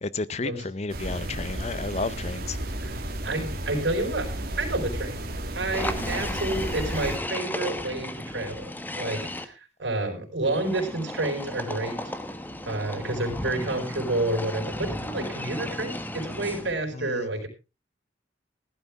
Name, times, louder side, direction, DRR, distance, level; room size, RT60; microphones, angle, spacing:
voice 1, 0.0-2.6 6.0-6.3 17.0-17.3, left 3 dB, 35° left, 0.6 m, -32 dB
sound 1, 0.9-7.2, right 1 dB, 55° right, 2.4 m, -33 dB
voice 2, 2.8-4.3 4.6-5.2 5.5-12.0 12.6-17.5, right 2 dB, 80° right, 4.7 m, -29 dB
sound 2, 5.7-9.4 10.4-16.8, left 1 dB, 10° left, 1.1 m, -34 dB
15.5 x 12.0 x 3.5 m
head